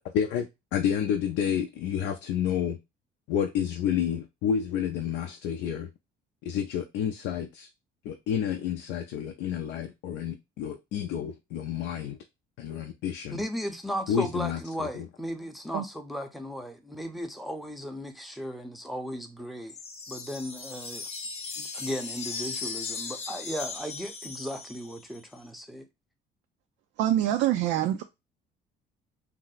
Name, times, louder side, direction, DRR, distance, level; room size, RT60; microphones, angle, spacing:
voice 1, 0.1-2.8 3.3-5.9 6.4-7.7 8.0-12.2 12.6-13.4 14.1-15.1, left 8 dB, 75° left, 0.4 m, -30 dB
voice 2, 13.3-19.8 20.1-21.1 21.6-25.8, equal, ahead, 0.6 m, -36 dB
sound 1, 19.7-25.2, left 4 dB, 35° left, 0.7 m, -38 dB
voice 3, 27.0-28.0, right 12 dB, 75° right, 0.4 m, -25 dB
2.7 x 2.0 x 3.9 m
cardioid pair, 105°, 18 cm